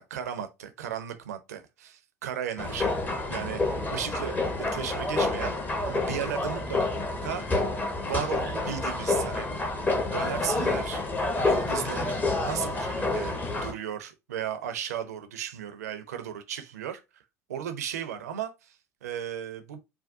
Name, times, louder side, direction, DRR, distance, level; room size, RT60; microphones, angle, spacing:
voice 1, 0.0-4.4 4.7-5.5 5.8-6.8 7.2-7.5 8.0-9.5 10.0-11.1 11.4-17.2 17.5-19.8, right 9 dB, 70° right, 0.5 m, -35 dB
sound 1, 2.6-13.7, left 2 dB, 20° left, 0.7 m, -28 dB
3.4 x 2.2 x 2.6 m
figure-of-eight pair, 70°, 9 cm